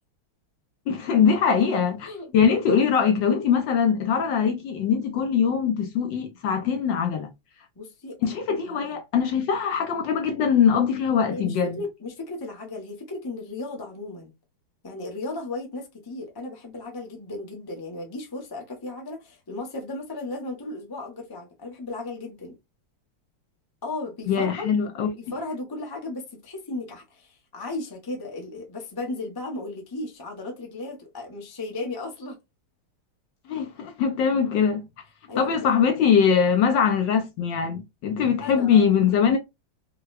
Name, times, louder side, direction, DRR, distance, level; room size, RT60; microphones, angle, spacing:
voice 1, 0.9-7.3 8.2-11.8 24.3-25.1 33.5-34.9 35.4-39.4, left 7 dB, 70° left, 1.2 m, -22 dB
voice 2, 7.8-8.8 11.3-14.3 14.8-22.6 23.8-24.7 25.2-32.4 35.3-35.8 38.4-38.9, left 2 dB, 25° left, 0.4 m, -35 dB
4.6 x 2.2 x 2.3 m
omnidirectional pair, 2.4 m